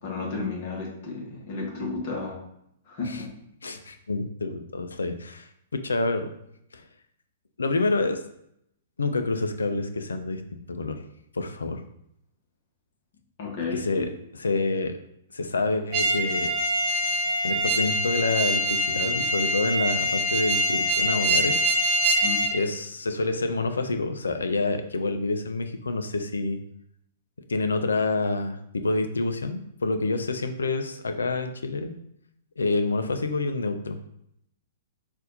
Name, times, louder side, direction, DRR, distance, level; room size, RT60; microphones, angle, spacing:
voice 1, 0.0-2.4 2.9-3.3 13.4-14.0 22.2-22.5, left 4 dB, 50° left, -1 dB, 1.4 m, -32 dB
voice 2, 3.6-6.3 6.7-6.8 7.6-8.2 9.0-10.4 10.7-11.0 11.3-11.8 13.7-14.9 15.3-16.5 17.4-21.6 22.5-26.6 27.5-28.6 28.8-32.0 32.6-34.0, left 3 dB, 75° left, 7 dB, 0.5 m, -27 dB
sound 1, 15.9-22.5, equal, 40° right, 0.8 m, -24 dB
4.1 x 2.5 x 3.9 m, 0.75 s
figure-of-eight pair, 110°, 0 cm